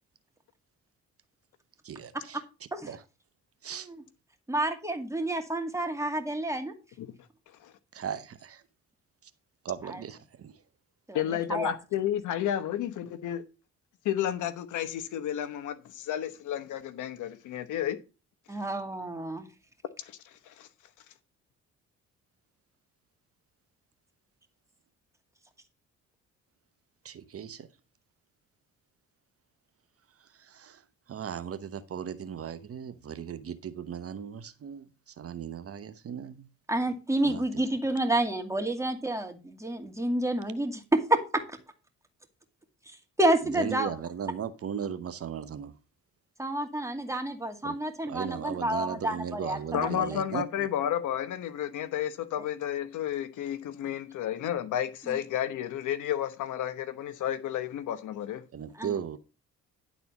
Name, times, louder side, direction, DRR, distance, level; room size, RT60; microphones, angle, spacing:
voice 1, 1.8-2.4 2.9-3.0 3.6-3.9 7.9-8.6 9.6-10.5 27.0-27.7 30.5-30.8 31.1-34.8 35.2-36.5 37.2-37.6 43.5-45.7 47.6-47.8 48.0-50.4 58.5-59.2, right 8 dB, 50° right, 0.9 m, -37 dB
voice 2, 3.7-4.0 4.5-6.7 9.8-10.0 11.1-11.2 11.5-11.7 18.5-19.5 36.7-41.4 43.2-44.0 46.4-49.9 55.1-55.2 58.8-59.0, right 1 dB, 10° right, 2.3 m, -29 dB
voice 3, 11.1-13.4 14.0-18.0 20.1-20.7 49.7-58.4, left 10 dB, 80° left, 1.1 m, -32 dB
11.0 x 4.2 x 7.0 m
cardioid pair, 90°, 30 cm